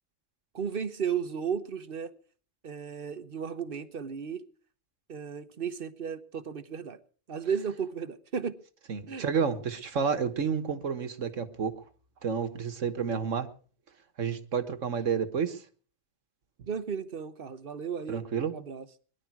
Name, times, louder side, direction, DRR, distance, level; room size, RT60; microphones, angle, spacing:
voice 1, 0.5-2.1 2.6-4.4 5.1-7.0 7.3-8.6 9.1-9.2 16.7-18.2 18.5-18.9, right 7 dB, 50° right, 1.2 m, -34 dB
voice 2, 8.9-11.7 12.2-13.5 14.2-15.6 18.1-18.5, right 6 dB, 85° right, 1.7 m, -30 dB
21.5 x 11.5 x 4.7 m
omnidirectional pair, 1.3 m